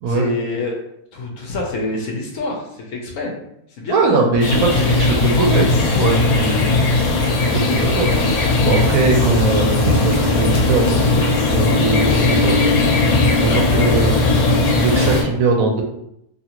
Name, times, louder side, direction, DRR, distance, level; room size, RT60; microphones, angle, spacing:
voice 1, 0.1-0.8 1.1-3.3 3.7-4.0 13.4-13.9, left 2 dB, 70° left, 0 dB, 1.0 m, -26 dB
voice 2, 3.9-13.0 13.4-14.1 14.7-15.8, right 3 dB, 80° right, 2 dB, 1.0 m, -21 dB
sound 1, 4.4-15.2, left 3 dB, 90° left, 1.1 m, -17 dB
2.7 x 2.4 x 2.9 m, 0.78 s
omnidirectional pair, 1.5 m